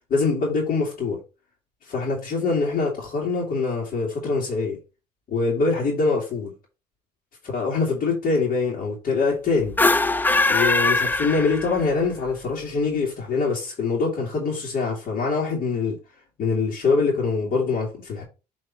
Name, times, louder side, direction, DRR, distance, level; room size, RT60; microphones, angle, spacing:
voice 1, 0.1-1.2 1.9-4.8 5.3-6.5 7.4-9.8 10.5-16.0 16.4-18.2, left 4 dB, 55° left, 2.6 m, -24 dB
sound 1, 9.7-12.0, left 2 dB, 10° left, 0.4 m, -21 dB
7.4 x 3.9 x 4.0 m
cardioid pair, 110°, 17 cm